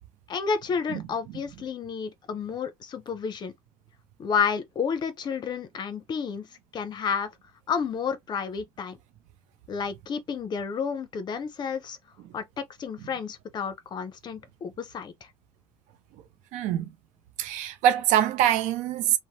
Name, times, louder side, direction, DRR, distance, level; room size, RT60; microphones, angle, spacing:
voice 1, 0.3-3.5 4.2-6.5 6.7-7.3 7.7-9.0 9.7-12.0 12.3-12.4 12.8-15.1, left 6 dB, 35° left, 0.6 m, -30 dB
voice 2, 16.5-16.9 17.4-19.2, right 11 dB, 75° right, 0.5 m, -24 dB
3.0 x 2.0 x 2.7 m
cardioid pair, 135°, 13 cm